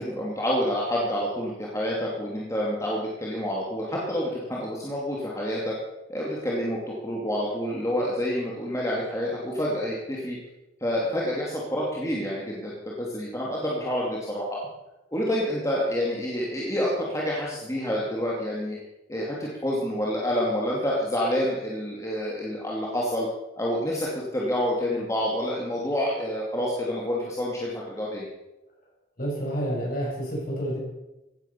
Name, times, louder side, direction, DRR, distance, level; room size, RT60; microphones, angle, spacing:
voice 1, 0.0-5.7 6.1-10.4 10.8-14.6 15.1-18.8 19.1-23.3 23.6-24.1 24.3-28.3, equal, 15° left, -4 dB, 2.4 m, -28 dB
voice 2, 29.2-30.8, right 1 dB, 45° left, -4 dB, 7.6 m, -29 dB
16.0 x 10.5 x 6.9 m, 0.99 s
head